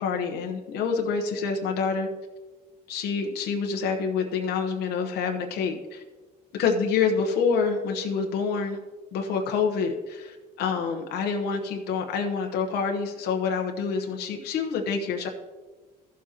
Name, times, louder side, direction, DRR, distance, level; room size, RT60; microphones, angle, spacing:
voice 1, 0.0-2.1 2.9-6.0 6.6-8.8 9.1-15.3, left 5 dB, 80° left, 3 dB, 1.0 m, -27 dB
14.5 x 7.3 x 3.0 m, 1.3 s
cardioid pair, 110°, 17 cm